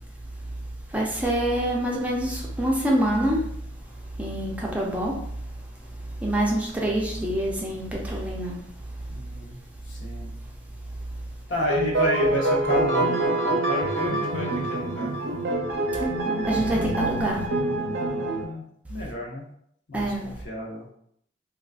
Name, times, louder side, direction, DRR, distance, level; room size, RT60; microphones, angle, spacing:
voice 1, 0.9-3.5 4.2-5.3 5.8-8.6 15.9-16.0 16.5-17.5 19.9-20.3, right 1 dB, 10° right, -3 dB, 0.4 m, -26 dB
voice 2, 9.1-9.6 9.9-10.3 11.5-15.1 18.4-18.6 18.9-19.5 19.9-20.9, left 1 dB, 70° left, -2 dB, 0.8 m, -31 dB
sound 1, 11.7-18.4, right 2 dB, 60° right, 0.5 m, -25 dB
3.7 x 2.4 x 2.4 m, 0.69 s
head